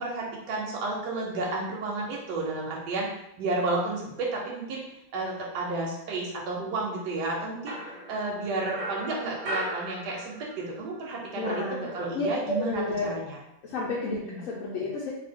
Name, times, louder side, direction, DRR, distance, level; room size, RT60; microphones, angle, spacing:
voice 1, 0.0-3.1 3.4-4.8 5.1-7.8 8.1-13.4 14.2-14.4, right 2 dB, 85° right, -2 dB, 1.2 m, -31 dB
sound 1, 7.7-10.7 10.9-12.4, right 1 dB, 65° right, 0.4 m, -37 dB
voice 2, 11.4-11.8 12.1-13.2 13.6-15.1, left 2 dB, 70° left, -4 dB, 0.8 m, -31 dB
2.7 x 2.3 x 3.4 m, 0.83 s
omnidirectional pair, 1.8 m